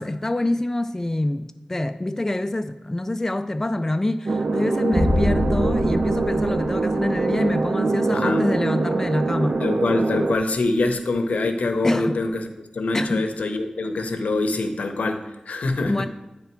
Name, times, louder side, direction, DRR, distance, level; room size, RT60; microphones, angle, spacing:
voice 1, 0.0-9.6 11.8-12.2 12.9-13.3 15.8-16.1, left 1 dB, 20° left, 0.3 m, -26 dB
sound 1, 4.2-10.4, right 3 dB, 55° right, 0.4 m, -23 dB
sound 2, 4.9-7.5, left 2 dB, 40° left, 0.9 m, -26 dB
voice 2, 8.1-8.5 9.6-12.5 12.7-16.1, left 2 dB, 85° left, 0.7 m, -24 dB
9.9 x 3.4 x 4.4 m
wide cardioid pair, 75°, 2 cm